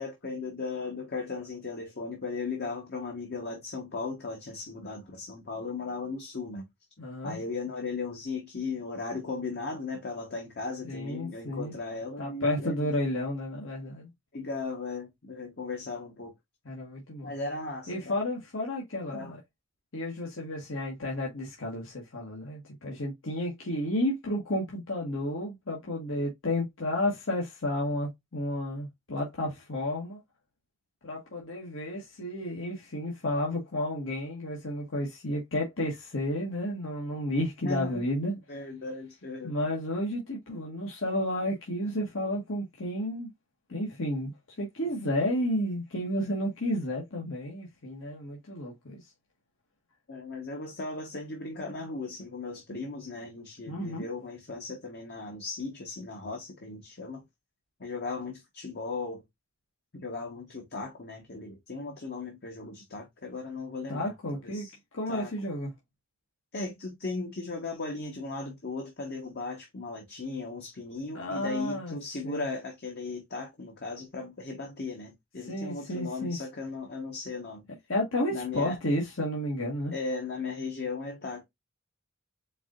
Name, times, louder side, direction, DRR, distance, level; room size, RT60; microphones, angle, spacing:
voice 1, 0.0-6.6 7.2-12.9 14.3-16.3 17.2-18.2 19.1-19.3 37.6-38.0 38.5-39.5 50.1-57.2 57.8-59.2 59.9-64.7 65.1-65.3 66.5-77.7 78.3-78.8 79.9-81.4, left 3 dB, 50° left, 1.0 m, -37 dB
voice 2, 7.0-7.4 10.8-11.7 12.2-14.1 16.6-17.3 17.9-19.4 19.9-30.2 31.0-38.3 39.4-43.3 43.7-49.0 53.7-54.1 63.9-64.7 64.9-65.7 71.1-72.0 72.2-72.4 75.4-76.4 77.9-79.9, left 1 dB, 70° left, 1.3 m, -32 dB
4.7 x 3.7 x 2.4 m
head